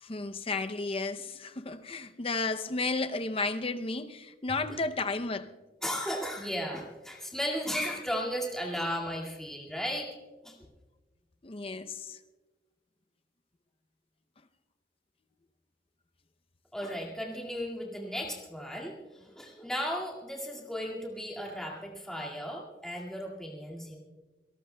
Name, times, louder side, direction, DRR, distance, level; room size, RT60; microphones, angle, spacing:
voice 1, 0.0-5.5 11.4-12.2, left 3 dB, 30° left, 0.6 m, -33 dB
voice 2, 5.8-10.1 10.4-10.6 16.7-24.0, equal, 5° left, 2.1 m, -35 dB
27.0 x 18.0 x 2.3 m
head